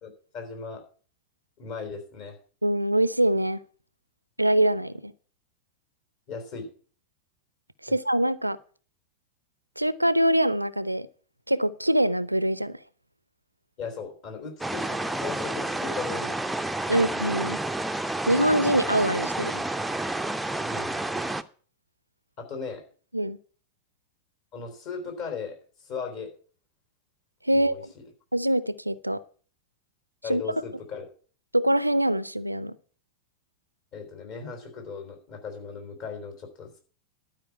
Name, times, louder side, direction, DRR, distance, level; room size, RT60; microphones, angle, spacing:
voice 1, 0.0-0.8 1.6-2.4 6.3-6.7 7.9-8.0 13.8-16.3 16.9-17.0 20.7-21.0 22.4-22.8 24.5-25.6 25.8-26.3 27.5-28.0 30.2-31.1 33.9-36.8, left 5 dB, 45° left, 4 dB, 3.7 m, -37 dB
voice 2, 2.6-3.6 4.4-5.1 7.8-8.6 9.8-11.1 11.5-12.8 16.9-17.6 18.3-19.6 23.1-23.4 27.4-27.7 28.3-29.2 30.3-30.4 31.5-32.7, right 1 dB, 85° right, 19 dB, 0.5 m, -24 dB
sound 1, 14.6-21.4, right 2 dB, 5° right, 0.6 m, -30 dB
12.0 x 5.0 x 8.3 m, 0.43 s
figure-of-eight pair, 90°, 0 cm